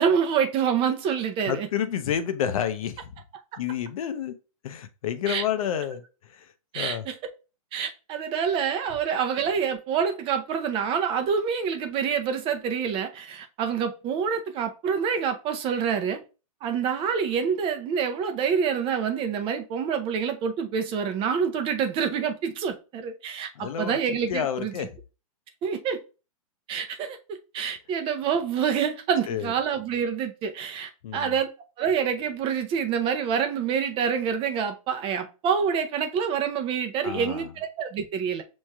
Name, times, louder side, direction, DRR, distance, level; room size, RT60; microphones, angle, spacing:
voice 1, 0.0-1.7 5.3-5.4 6.7-7.1 7.7-16.2 16.6-24.7 25.6-26.0 26.7-27.2 27.5-31.5 31.8-38.4, right 7 dB, 30° right, 0.6 m, -27 dB
voice 2, 1.5-3.1 3.6-4.3 4.6-7.0 23.6-24.0 24.3-24.9 29.3-29.5 31.0-31.4 37.0-37.5, left 9 dB, 70° left, 0.7 m, -30 dB
6.1 x 3.1 x 2.3 m
hypercardioid pair, 130°, 19 cm